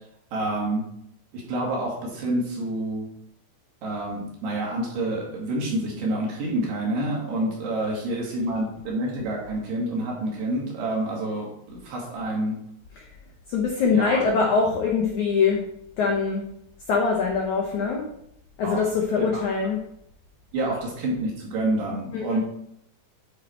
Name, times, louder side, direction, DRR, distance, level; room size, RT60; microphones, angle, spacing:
voice 1, 0.3-0.8 1.3-3.1 3.8-12.6 13.9-14.2 18.6-18.8 19.2-19.3 20.5-22.4, right 1 dB, 70° right, -3 dB, 4.1 m, -28 dB
voice 2, 13.5-15.6 16.0-16.4 16.9-18.1 18.6-19.8 22.1-22.4, left 5 dB, 85° left, 0 dB, 1.7 m, -23 dB
10.5 x 4.4 x 4.4 m, 0.73 s
omnidirectional pair, 4.9 m